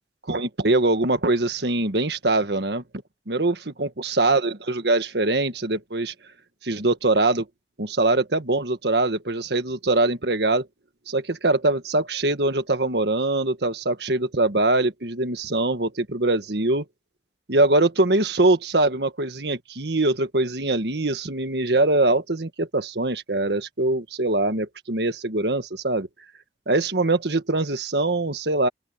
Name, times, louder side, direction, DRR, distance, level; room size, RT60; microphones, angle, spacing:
voice 1, 0.3-2.8 3.3-6.1 6.6-7.4 7.8-10.7 11.1-16.8 17.5-26.1 26.7-28.7, right 2 dB, 70° right, 1.6 m, -23 dB
open air
head